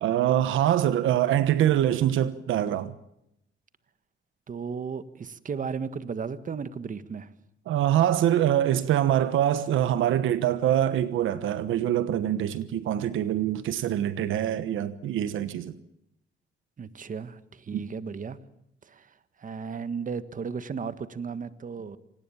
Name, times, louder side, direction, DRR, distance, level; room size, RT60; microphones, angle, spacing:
voice 1, 0.0-2.9 7.7-15.7 17.7-17.8, right 11 dB, 80° right, 1.2 m, -24 dB
voice 2, 4.5-7.3 16.8-18.4 18.8-22.0, right 6 dB, 40° right, 1.6 m, -35 dB
26.5 x 19.0 x 7.2 m
cardioid pair, 90°, 20 cm